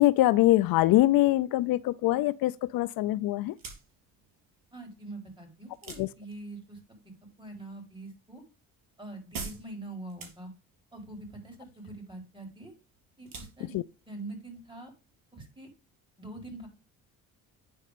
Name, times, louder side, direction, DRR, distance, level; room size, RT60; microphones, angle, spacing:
voice 1, 0.0-3.6 6.0-6.1 13.7-13.8, left 16 dB, 70° left, 0.5 m, -23 dB
sound 1, 3.4-15.5, right 5 dB, 65° right, 3.8 m, -49 dB
voice 2, 4.7-7.0 7.4-8.4 9.0-10.5 10.9-12.7 13.2-13.8 14.1-14.9 15.3-15.7 16.2-16.7, right 2 dB, 15° right, 4.4 m, -44 dB
9.6 x 4.2 x 5.0 m
cardioid pair, 80°, 36 cm